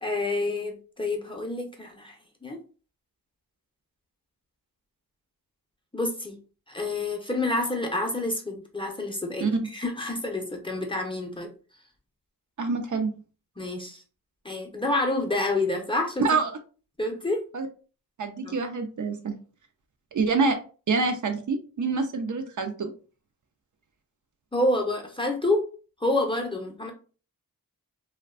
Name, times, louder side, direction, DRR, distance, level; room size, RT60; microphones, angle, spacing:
voice 1, 0.0-2.1 2.4-2.6 5.9-6.4 6.7-11.5 13.6-14.0 14.4-16.2 17.0-17.4 18.4-18.6 24.5-25.6 26.0-26.9, left 2 dB, 15° left, 2 dB, 0.5 m, -28 dB
voice 2, 12.6-13.1 16.2-16.6 17.5-17.7 18.2-19.4 20.1-20.6 20.9-22.9, right 4 dB, 55° right, 6 dB, 0.5 m, -26 dB
2.5 x 2.1 x 2.3 m, 0.37 s
wide cardioid pair, 65°, 36 cm